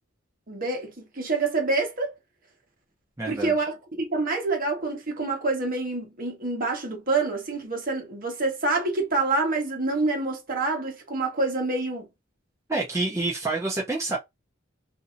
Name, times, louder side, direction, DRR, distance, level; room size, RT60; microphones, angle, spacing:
voice 1, 0.5-2.1 3.3-12.1, right 3 dB, 45° right, 1.2 m, -27 dB
voice 2, 3.2-3.5 12.7-14.2, right 2 dB, 15° right, 0.7 m, -27 dB
2.7 x 2.7 x 2.5 m
head